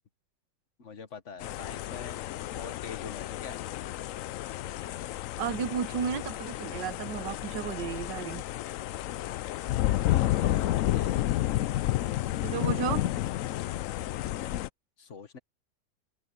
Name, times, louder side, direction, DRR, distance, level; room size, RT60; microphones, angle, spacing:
voice 1, 0.8-2.2 2.5-3.6 10.0-11.2 15.0-15.4, left 5 dB, 45° left, 1.6 m, -43 dB
sound 1, 1.4-14.7, left 14 dB, 75° left, 0.7 m, -31 dB
voice 2, 5.4-8.4 11.2-11.3 12.4-13.0, right 8 dB, 85° right, 1.6 m, -33 dB
open air
omnidirectional pair, 1.9 m